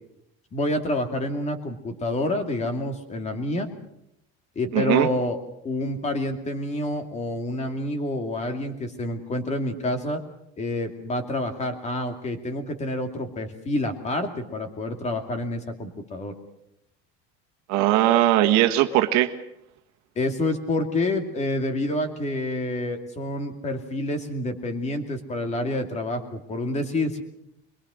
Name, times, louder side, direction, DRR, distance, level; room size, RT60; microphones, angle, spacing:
voice 1, 0.5-3.7 4.6-5.4 5.6-10.2 10.6-16.3 20.2-27.2, left 1 dB, 20° left, 6 dB, 2.4 m, -28 dB
voice 2, 4.7-5.1 17.7-19.3, right 14 dB, 65° right, 7 dB, 1.6 m, -19 dB
23.0 x 22.5 x 6.3 m, 0.78 s
cardioid pair, 165°, 31 cm